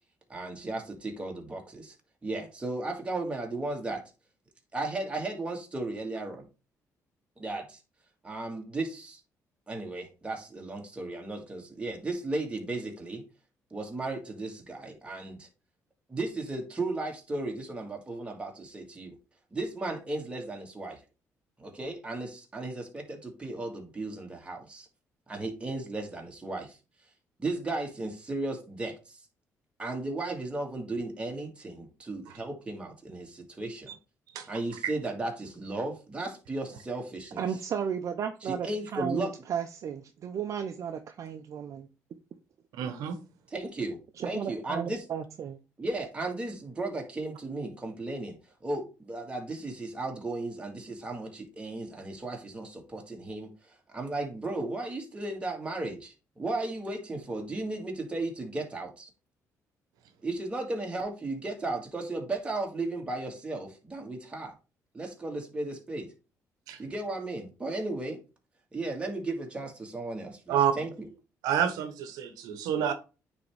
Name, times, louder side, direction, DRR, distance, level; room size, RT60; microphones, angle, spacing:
voice 1, 0.3-1.9 2.2-4.0 4.7-6.5 7.4-7.8 8.2-9.2 9.7-13.2 13.7-15.5 16.1-19.2 19.5-21.0 21.6-24.9 25.3-26.8 27.4-29.1 29.8-33.9 34.5-37.5 38.4-39.3 43.5-44.0 44.2-45.1 45.8-48.4 48.6-53.5 53.9-59.1 60.2-64.5 64.9-66.1 66.8-68.2 68.7-71.1, right 2 dB, 20° right, 1.9 m, -35 dB
voice 2, 37.4-41.9 44.2-45.6, right 8 dB, 55° right, 0.6 m, -34 dB
voice 3, 42.7-43.2 66.7-66.8 70.5-70.7 71.4-72.9, right 9 dB, 90° right, 0.8 m, -28 dB
9.2 x 3.5 x 3.3 m
cardioid pair, 90°, 6 cm